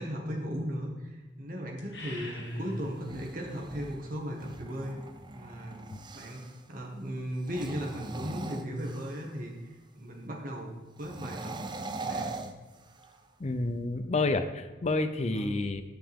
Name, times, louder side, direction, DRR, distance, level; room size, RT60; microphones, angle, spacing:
voice 1, 0.0-5.0 5.3-5.8 6.1-6.4 6.7-9.5 9.9-10.7 11.0-11.7 12.0-12.4 15.3-15.6, equal, 50° right, 0 dB, 1.7 m, -36 dB
sound 1, 1.8-3.4, left 1 dB, 70° left, 1.8 m, -41 dB
sound 2, 2.9-6.6 7.4-9.4 11.0-13.3, right 3 dB, 25° right, 0.6 m, -41 dB
voice 2, 13.4-15.8, left 2 dB, 35° left, 8 dB, 0.6 m, -29 dB
10.5 x 7.1 x 3.6 m, 1.2 s
head